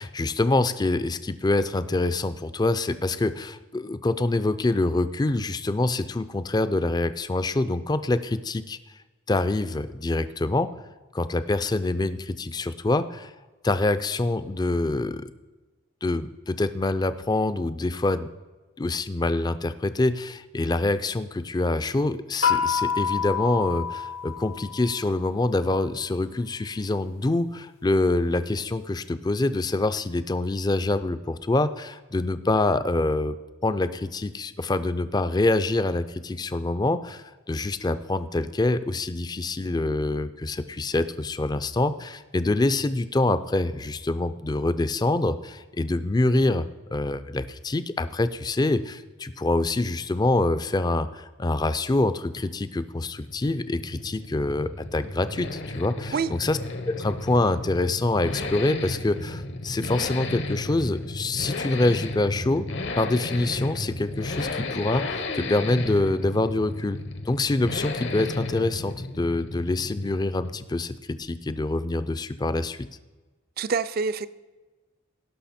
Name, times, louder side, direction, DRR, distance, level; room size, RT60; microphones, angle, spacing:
voice 1, 0.0-8.8 9.3-10.7 11.1-13.3 13.6-15.3 16.0-18.3 18.8-33.4 33.6-56.6 56.9-62.7 63.0-67.0 67.3-72.9, left 2 dB, 20° left, 12 dB, 0.4 m, -25 dB
sound 1, 22.4-25.1, left 7 dB, 80° left, 1.1 m, -27 dB
sound 2, 52.7-70.7, left 2 dB, 60° left, 1.0 m, -34 dB
voice 2, 73.6-74.3, right 5 dB, 50° right, 15 dB, 0.4 m, -26 dB
17.5 x 6.1 x 4.2 m, 1.2 s
head